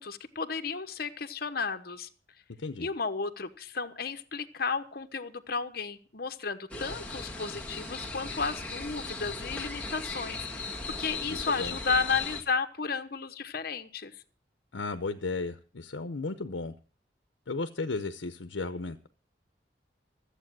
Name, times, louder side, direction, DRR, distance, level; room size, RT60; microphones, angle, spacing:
voice 1, 0.0-2.1 2.8-10.5 10.9-14.2, left 5 dB, 55° left, 9 dB, 1.0 m, -33 dB
sound 1, 6.7-12.4, left 3 dB, 5° left, 1.8 m, -37 dB
voice 2, 11.3-11.8 14.7-16.7 17.5-19.1, left 3 dB, 85° left, 9 dB, 0.8 m, -34 dB
14.5 x 8.3 x 6.2 m, 0.42 s
head